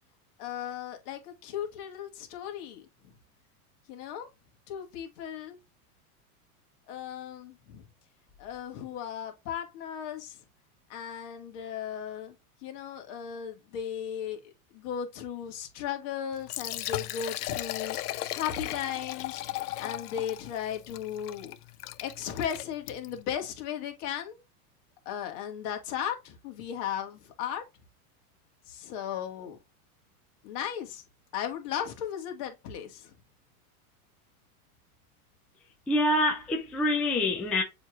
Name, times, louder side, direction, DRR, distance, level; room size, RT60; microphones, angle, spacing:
voice 1, 0.4-2.8 3.9-4.3 4.7-5.6 6.9-7.8 8.4-10.4 10.9-12.4 12.6-18.0 18.3-19.4 19.8-21.5 22.0-24.4 25.0-27.6 28.7-29.6 30.4-31.0 31.3-33.1, left 9 dB, 50° left, 1.8 m, -36 dB
Liquid, 16.3-23.2, left 15 dB, 90° left, 0.6 m, -37 dB
voice 2, 35.9-37.6, left 1 dB, 5° left, 0.4 m, -26 dB
7.0 x 3.2 x 2.4 m
supercardioid pair, 140°, 44 cm